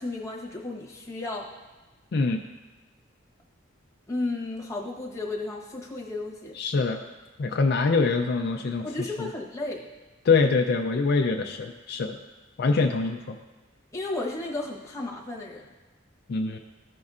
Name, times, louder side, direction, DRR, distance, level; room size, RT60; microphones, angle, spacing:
voice 1, 0.0-1.5 4.1-6.5 8.8-9.9 13.9-15.6, left 2 dB, 15° left, -3 dB, 1.0 m, -33 dB
voice 2, 2.1-2.4 6.5-7.0 7.4-8.9 9.2-9.3 10.2-12.2 12.6-13.4 16.3-16.6, left 4 dB, 55° left, 3 dB, 0.4 m, -24 dB
14.0 x 5.3 x 2.4 m, 1.2 s
head